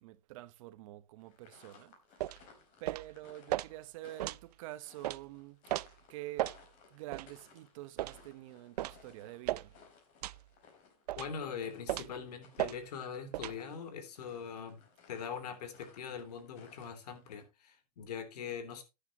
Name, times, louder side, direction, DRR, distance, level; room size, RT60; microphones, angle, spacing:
voice 1, 0.0-6.6 6.9-9.7, right 16 dB, 55° right, 1.1 m, -48 dB
sound 1, 1.2-17.4, left 5 dB, 40° left, 4.4 m, -61 dB
sound 2, 2.2-2.4 2.9-3.1 3.5-3.7 4.2-4.4 5.0-5.2 5.7-5.9 6.4-6.6 7.1-7.3 8.0-8.2 8.8-9.0 9.5-9.7 10.2-10.4 11.1-11.3 11.9-12.2 12.6-12.8 13.3-13.6, right 15 dB, 80° right, 0.5 m, -35 dB
voice 2, 11.2-14.8 15.1-18.8, left 7 dB, 80° left, 3.3 m, -42 dB
11.5 x 10.0 x 2.9 m
supercardioid pair, 145°, 20 cm